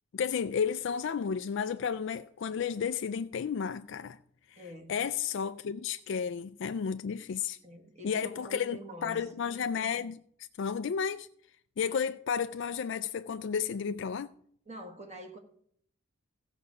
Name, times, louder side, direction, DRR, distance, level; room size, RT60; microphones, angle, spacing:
voice 1, 0.1-4.2 4.5-7.6 8.0-10.2 10.6-11.3 11.8-14.3, left 7 dB, 55° left, 0.3 m, -32 dB
voice 2, 4.6-5.0 7.6-9.3 14.7-15.4, right 1 dB, 30° right, 1.6 m, -45 dB
14.5 x 4.9 x 6.8 m
head